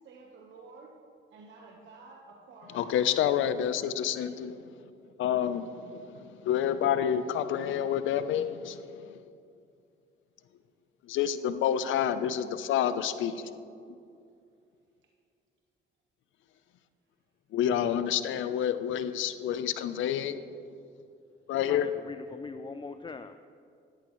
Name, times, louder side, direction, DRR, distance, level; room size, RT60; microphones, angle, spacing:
voice 1, 0.0-1.0 1.3-3.0 4.2-4.4 5.5-5.6, right 3 dB, 70° right, 0 dB, 1.1 m, -51 dB
voice 2, 2.7-4.6 5.2-9.2 11.1-13.3 17.5-20.4 21.5-21.9, left 9 dB, 80° left, 12 dB, 0.6 m, -28 dB
voice 3, 21.6-23.4, left 4 dB, 25° left, 9 dB, 0.3 m, -42 dB
13.5 x 10.5 x 3.1 m, 2.4 s
cardioid pair, 90°, 20 cm